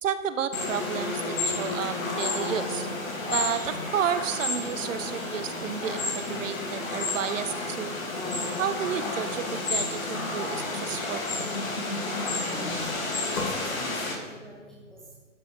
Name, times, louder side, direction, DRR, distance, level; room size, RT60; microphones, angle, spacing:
voice 1, 0.0-2.9 3.3-8.0 8.6-11.5, right 8 dB, 70° right, 12 dB, 0.9 m, -31 dB
sound 1, 0.5-14.1, left 2 dB, 80° left, 2.8 m, -31 dB
voice 2, 12.4-15.2, equal, ahead, -6 dB, 0.4 m, -45 dB
12.0 x 4.9 x 5.2 m, 1.3 s
hypercardioid pair, 135°, 40 cm